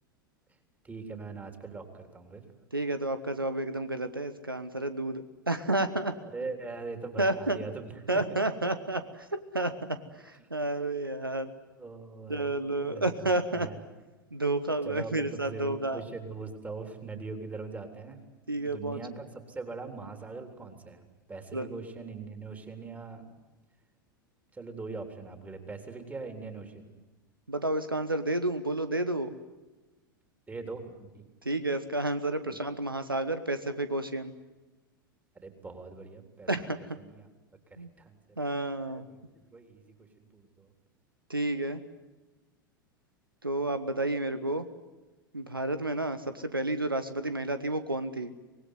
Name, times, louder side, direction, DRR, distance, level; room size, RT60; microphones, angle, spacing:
voice 1, 0.8-2.4 6.2-8.2 10.4-10.5 11.7-13.8 14.8-18.2 18.6-23.4 24.5-26.9 30.5-31.3 32.5-32.6 35.4-36.5 36.8-37.3 37.7-38.2 38.9-39.2 39.5-40.7, right 4 dB, 15° right, 6 dB, 3.7 m, -42 dB
voice 2, 2.7-6.1 7.2-7.6 8.1-11.5 12.3-13.7 14.3-16.0 18.5-19.0 21.5-21.7 27.5-29.4 31.4-34.3 36.5-36.9 37.8-37.9 38.4-39.0 41.3-41.8 43.4-44.7 45.3-48.3, right 2 dB, 85° right, 11 dB, 1.2 m, -30 dB
25.0 x 19.5 x 9.5 m, 1.1 s
figure-of-eight pair, 85°, 11 cm